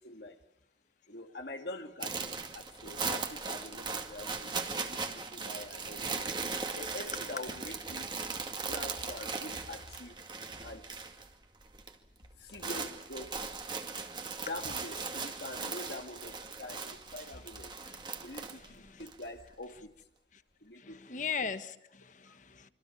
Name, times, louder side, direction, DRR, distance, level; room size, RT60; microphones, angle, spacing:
voice 1, 0.0-0.4 1.1-4.5 4.8-6.3 6.8-8.1 8.7-10.2 10.6-10.8 12.4-13.5 14.5-17.7 18.2-19.9 20.6-21.2 22.3-22.4, left 2 dB, 65° left, 1.9 m, -45 dB
sound 1, 2.0-11.3 11.5-11.9 12.2-19.2, right 4 dB, 25° right, 2.2 m, -38 dB
voice 2, 18.5-19.1 20.3-20.4 20.8-22.7, left 6 dB, 45° left, 1.4 m, -40 dB
26.5 x 25.0 x 7.1 m
head